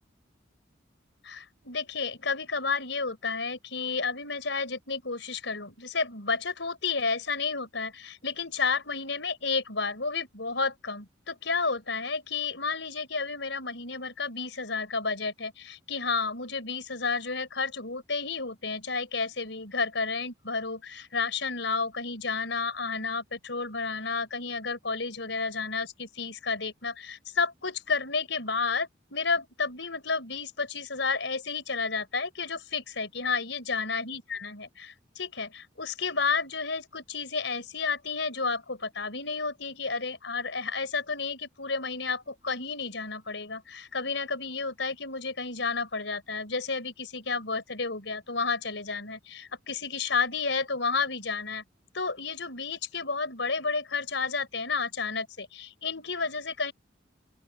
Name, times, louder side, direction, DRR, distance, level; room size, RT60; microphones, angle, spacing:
voice 1, 1.2-51.6 51.9-56.7, left 4 dB, 70° left, 5.5 m, -31 dB
open air
head